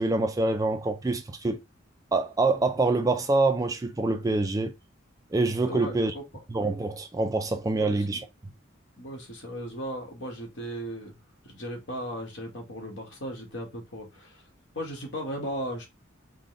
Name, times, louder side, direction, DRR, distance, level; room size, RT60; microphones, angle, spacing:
voice 1, 0.0-1.6 2.1-4.7 5.3-6.1 6.5-8.2, right 2 dB, 20° right, 0.3 m, -25 dB
voice 2, 5.6-6.2 7.7-8.2 9.0-11.2 11.4-14.4 14.7-15.9, equal, 65° left, 1.4 m, -36 dB
3.9 x 2.2 x 3.7 m
head